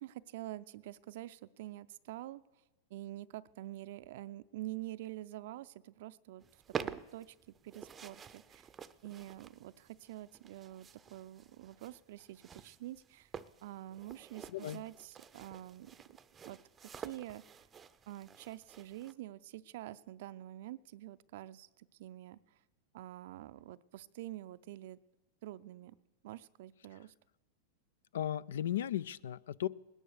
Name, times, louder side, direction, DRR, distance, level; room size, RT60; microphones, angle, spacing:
voice 1, 0.0-2.4 2.9-6.4 6.8-7.3 7.6-8.7 9.0-13.3 13.6-15.9 16.4-17.6 18.1-22.4 22.9-25.0 25.4-25.9 26.2-27.1, right 15 dB, 65° right, 14 dB, 0.5 m, -47 dB
sound 1, 6.4-19.1, right 7 dB, 20° right, 0.6 m, -49 dB
voice 2, 14.5-14.8 28.1-29.7, left 11 dB, 85° left, 22 dB, 0.4 m, -36 dB
19.5 x 10.0 x 6.6 m, 1.1 s
hypercardioid pair, 125°, 0 cm